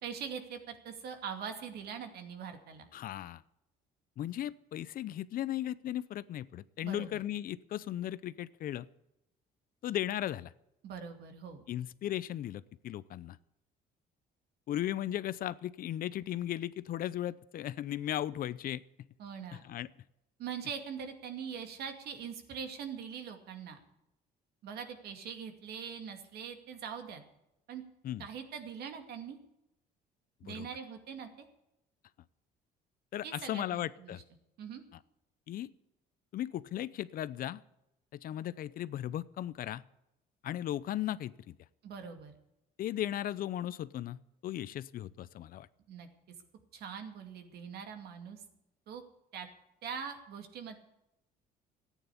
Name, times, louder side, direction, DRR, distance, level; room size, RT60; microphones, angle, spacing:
voice 1, 0.0-2.9 6.8-7.2 10.8-11.6 19.2-19.6 20.4-23.8 24.6-27.2 27.7-27.8 28.2-29.4 30.4-31.5 33.2-34.1 34.6-34.8 41.8-42.3 45.9-46.1 46.7-48.4 48.9-49.0 49.3-49.5 49.8-50.8, right 7 dB, 70° right, 6 dB, 2.4 m, -42 dB
voice 2, 2.9-3.4 4.2-8.9 9.8-10.5 11.7-13.4 14.7-18.8 19.5-19.9 28.0-28.3 30.5-30.7 33.1-34.2 34.9-35.0 35.5-35.7 36.3-37.6 38.1-39.8 40.4-41.5 42.8-45.7, left 12 dB, 60° left, 17 dB, 0.6 m, -36 dB
14.5 x 9.3 x 8.4 m, 0.85 s
cardioid pair, 110°, 17 cm